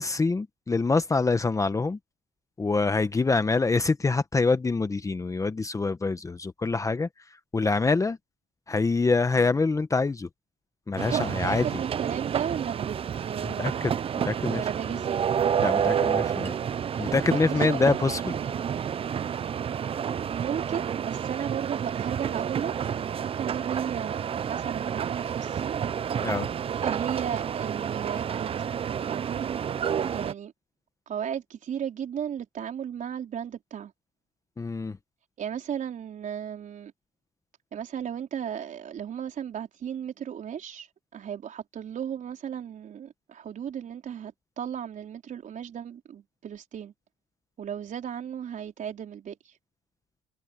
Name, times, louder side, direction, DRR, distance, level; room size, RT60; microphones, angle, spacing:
voice 1, 0.0-2.0 2.6-8.2 8.7-10.3 10.9-11.8 13.4-14.0 14.2-14.7 15.6-16.6 17.0-18.4 26.2-26.5 34.6-35.0, left 3 dB, 20° left, 1.0 m, -25 dB
sound 1, 11.0-30.3, right 8 dB, 35° right, 0.5 m, -29 dB
voice 2, 11.1-13.8 14.3-15.3 16.9-17.9 18.3-18.6 19.7-19.9 20.3-25.8 26.8-28.6 28.9-29.6 30.1-30.5 31.1-33.9 35.4-36.9 37.7-40.9 41.1-46.9 47.6-49.5, right 8 dB, 50° right, 4.3 m, -35 dB
cardioid pair, 110°, 17 cm